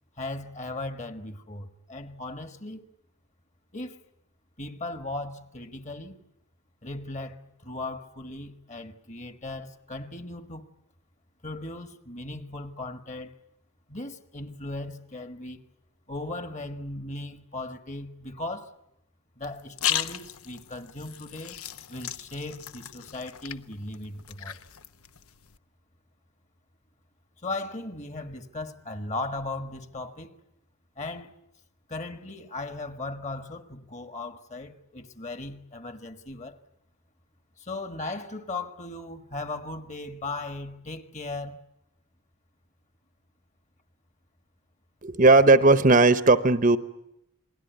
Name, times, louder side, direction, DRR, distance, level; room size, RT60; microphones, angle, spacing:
voice 1, 0.2-2.9 3.7-4.0 4.6-6.2 6.8-10.7 11.4-13.3 13.9-15.6 16.1-18.7 19.4-21.6 21.9-24.6 27.4-30.4 31.0-31.3 31.9-36.6 37.6-41.6, left 2 dB, 30° left, 1.6 m, -37 dB
sound 1, 19.4-25.6, left 11 dB, 75° left, 1.0 m, -36 dB
voice 2, 45.0-46.8, right 3 dB, 35° right, 0.9 m, -17 dB
28.0 x 21.0 x 9.3 m
head